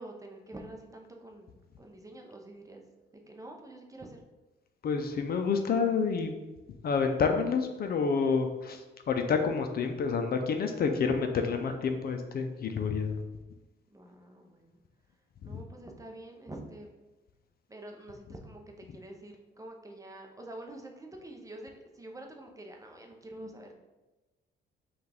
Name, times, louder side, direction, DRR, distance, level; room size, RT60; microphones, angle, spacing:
voice 1, 0.0-2.8 3.3-4.2 13.9-14.8 15.4-16.9 17.7-18.6 18.9-23.7, right 1 dB, 15° right, 2 dB, 0.7 m, -47 dB
voice 2, 4.8-6.3 6.8-13.2 15.4-15.6, left 5 dB, 50° left, 6 dB, 0.5 m, -29 dB
5.6 x 2.4 x 3.4 m, 1.1 s
cardioid pair, 90°, 20 cm